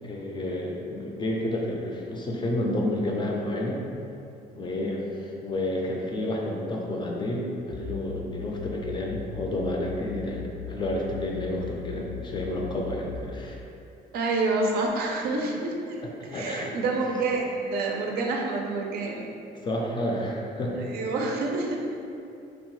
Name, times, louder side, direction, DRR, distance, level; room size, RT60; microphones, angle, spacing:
voice 1, 0.0-3.8 4.5-13.6 16.0-16.7 19.6-20.8, left 1 dB, 30° left, -1 dB, 0.4 m, -30 dB
sound 1, 7.7-13.1, left 11 dB, 80° left, 0.5 m, -39 dB
voice 2, 14.1-16.0 16.3-19.2 20.9-21.8, right 3 dB, 65° right, 0 dB, 0.4 m, -28 dB
2.8 x 2.2 x 3.0 m, 2.6 s
cardioid pair, 110°, 17 cm